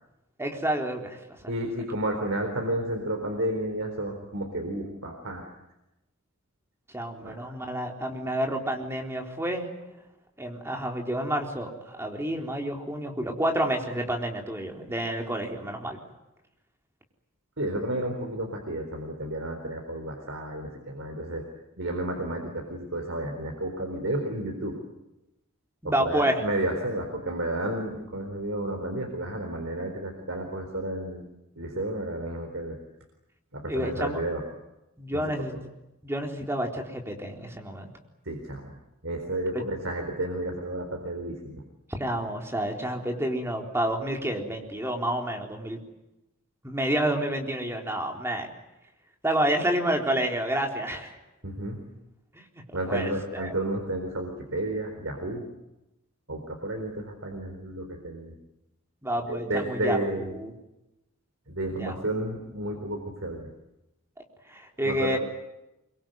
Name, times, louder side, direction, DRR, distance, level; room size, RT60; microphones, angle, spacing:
voice 1, 0.4-1.2 6.9-9.7 10.4-16.0 25.8-26.4 33.7-34.2 35.0-35.6 36.0-37.9 39.5-39.6 41.9-45.8 46.6-48.5 49.2-51.2 52.3-53.5 59.0-60.0 60.3-60.5 61.8-62.0 64.5-65.2, right 1 dB, 10° right, 2 dB, 3.9 m, -29 dB
voice 2, 1.5-5.5 7.2-7.5 17.6-21.4 21.8-24.8 26.0-31.2 31.6-32.8 33.5-34.4 35.1-35.2 38.2-38.7 39.0-41.6 51.4-51.8 52.7-55.4 56.3-58.4 59.3-60.3 61.5-63.5 64.8-65.1, right 1 dB, 65° right, 3 dB, 4.1 m, -31 dB
25.0 x 24.0 x 9.3 m, 0.95 s
head